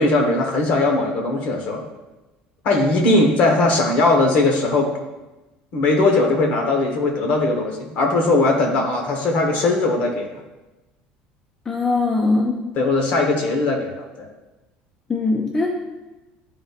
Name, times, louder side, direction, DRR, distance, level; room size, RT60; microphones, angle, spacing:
voice 1, 0.0-1.8 2.6-4.9 5.7-10.3 12.7-14.3, left 2 dB, 45° left, 2 dB, 1.1 m, -19 dB
voice 2, 11.7-12.6 15.1-15.7, left 3 dB, 15° left, 0 dB, 0.4 m, -20 dB
11.0 x 3.9 x 2.4 m, 1.1 s
cardioid pair, 180°, 3 cm